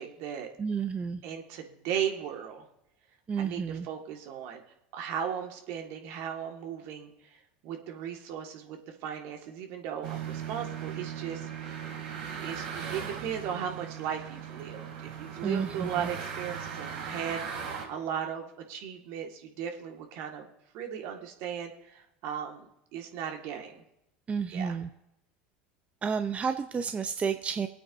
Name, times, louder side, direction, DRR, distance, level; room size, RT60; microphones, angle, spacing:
voice 1, 0.0-0.5 1.2-2.7 3.4-4.6 4.9-11.5 12.4-20.5 20.7-23.8 24.5-24.8, right 8 dB, 65° right, 3 dB, 1.8 m, -37 dB
voice 2, 0.6-1.2 3.3-3.9 15.4-16.1 24.3-24.9 26.0-27.7, right 6 dB, 25° right, 9 dB, 0.6 m, -31 dB
sound 1, 10.0-17.8, right 7 dB, 80° right, 2.8 m, -38 dB
25.5 x 8.7 x 2.7 m, 0.83 s
hypercardioid pair, 95°, 5 cm